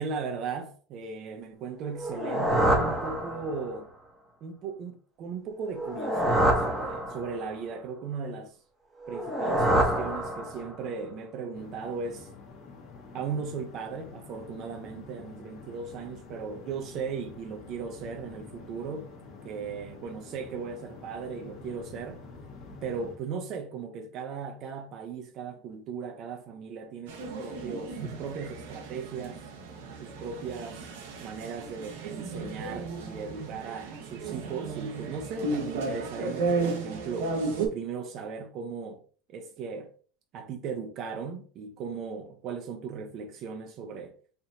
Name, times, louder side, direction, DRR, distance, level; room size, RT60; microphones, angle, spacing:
voice 1, 0.0-3.9 4.4-8.6 9.1-12.3 13.1-19.1 19.4-22.2 22.8-29.4 30.0-30.9 31.2-37.4 37.7-39.0 39.3-39.9 40.3-44.1, right 5 dB, 40° right, 0.5 m, -37 dB
sound 1, 1.9-3.8 5.7-7.5 9.0-10.8, right 1 dB, 10° right, 0.8 m, -27 dB
sound 2, 11.5-23.2, left 4 dB, 45° left, 1.1 m, -47 dB
sound 3, 27.1-37.7, right 3 dB, 90° right, 0.9 m, -34 dB
4.3 x 2.5 x 2.7 m
supercardioid pair, 160°, 0 cm